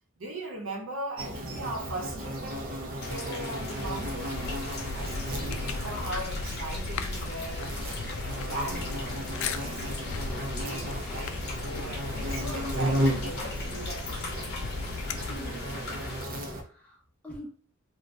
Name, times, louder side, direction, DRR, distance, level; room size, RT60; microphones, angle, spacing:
voice 1, 0.2-4.4 4.9-7.7 8.1-14.8, right 1 dB, 85° right, 0.9 m, -39 dB
sound 1, 1.2-16.6, equal, 45° right, 0.6 m, -35 dB
sound 2, 3.0-16.2, left 2 dB, 55° left, 0.8 m, -40 dB
sound 3, 4.2-15.7, left 3 dB, 80° left, 0.3 m, -37 dB
voice 2, 15.3-17.5, equal, 5° left, 0.9 m, -46 dB
2.6 x 2.3 x 3.1 m
head